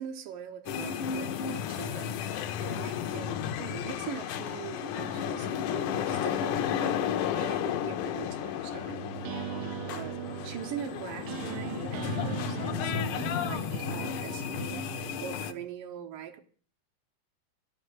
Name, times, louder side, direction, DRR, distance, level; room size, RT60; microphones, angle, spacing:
voice 1, 0.0-9.0 9.9-16.4, right 9 dB, 75° right, 2.8 m, -42 dB
sound 1, 0.7-15.5, left 9 dB, 70° left, 2.2 m, -33 dB
sound 2, 8.9-15.7, right 14 dB, 90° right, 2.5 m, -40 dB
13.0 x 6.6 x 9.6 m
omnidirectional pair, 4.0 m